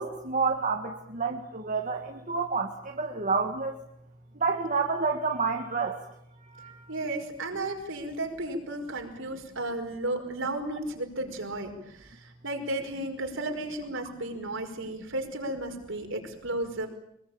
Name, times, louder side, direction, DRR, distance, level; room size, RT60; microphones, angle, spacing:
voice 1, 0.0-3.7 4.4-6.0 6.6-6.8, right 4 dB, 40° right, 3 dB, 1.8 m, -29 dB
voice 2, 6.9-16.9, right 1 dB, 65° right, 4 dB, 5.2 m, -34 dB
24.5 x 22.0 x 8.9 m, 0.76 s
head